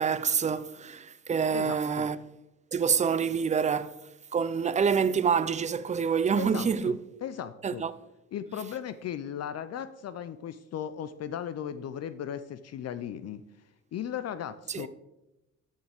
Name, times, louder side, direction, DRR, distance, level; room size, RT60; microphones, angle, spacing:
voice 1, 0.0-2.2 2.7-3.9 4.3-7.0 7.6-7.9 14.7-14.9, right 6 dB, 25° right, 0.4 m, -27 dB
voice 2, 1.5-2.1 6.4-7.8 8.3-13.4 13.9-14.9, left 9 dB, 55° left, 0.5 m, -37 dB
12.5 x 6.3 x 3.5 m
cardioid pair, 90°, 30 cm